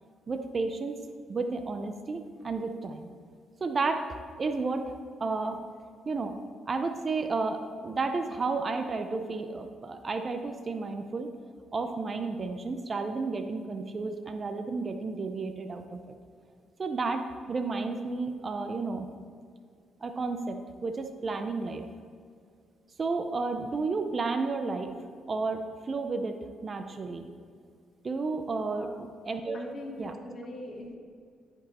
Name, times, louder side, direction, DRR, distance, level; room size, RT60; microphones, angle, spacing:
voice 1, 0.3-1.0 1.3-3.1 3.6-4.9 5.2-5.6 6.1-6.3 6.7-11.3 11.7-16.2 16.8-19.1 20.0-21.9 23.0-24.9 25.3-26.4 26.6-27.3 28.0-29.6 30.0-30.1, right 3 dB, 35° right, 6 dB, 0.6 m, -32 dB
voice 2, 28.8-29.1 29.5-31.0, left 1 dB, 40° left, -2 dB, 1.8 m, -41 dB
9.9 x 5.4 x 4.2 m, 2.2 s
cardioid pair, 90°, 0 cm